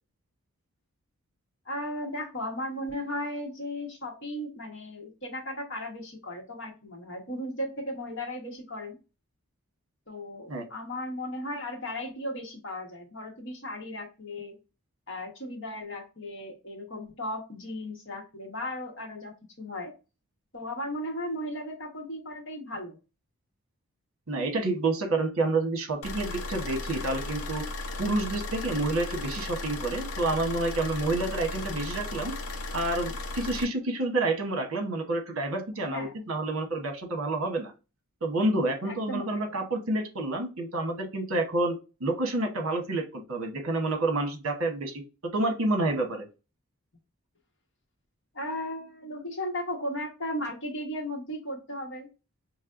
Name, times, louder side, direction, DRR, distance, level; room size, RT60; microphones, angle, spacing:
voice 1, 1.6-9.0 10.1-14.5 15.1-19.9 20.5-23.0 31.2-31.4 35.9-36.3 38.8-39.5 48.3-52.1, left 1 dB, 55° left, 1 dB, 1.4 m, -36 dB
voice 2, 24.3-27.6 28.0-32.3 32.7-37.7 38.2-45.0 45.3-46.2, right 2 dB, 65° right, 4 dB, 1.1 m, -29 dB
sound 1, 26.0-33.6, left 2 dB, 75° left, 0.7 m, -35 dB
5.4 x 3.1 x 2.5 m, 0.30 s
head